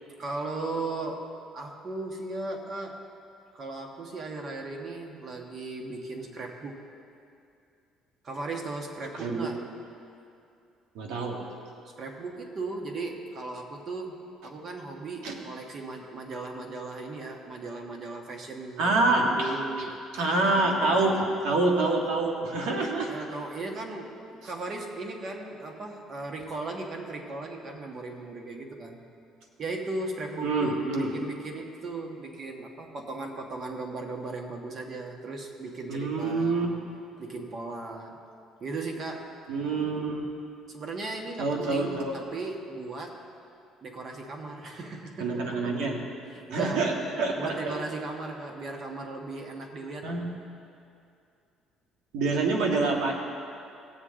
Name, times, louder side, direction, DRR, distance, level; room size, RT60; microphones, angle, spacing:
voice 1, 0.2-3.0 3.5-6.8 8.2-9.6 12.0-14.2 14.4-19.9 23.1-29.0 29.6-36.6 37.2-38.2 38.6-39.4 40.7-43.2 43.8-45.9 46.3-46.8 47.4-50.2, right 3 dB, 40° right, 2 dB, 1.4 m, -37 dB
voice 2, 9.2-9.5 11.0-11.4 15.2-15.4 18.8-19.5 20.1-23.1 30.4-31.1 35.9-36.7 39.5-40.2 41.4-42.1 45.2-46.0 46.5-47.8 50.0-50.3 52.1-53.1, right 3 dB, 90° right, 1 dB, 1.6 m, -26 dB
17.5 x 7.9 x 3.8 m, 2.5 s
cardioid pair, 130°, 0 cm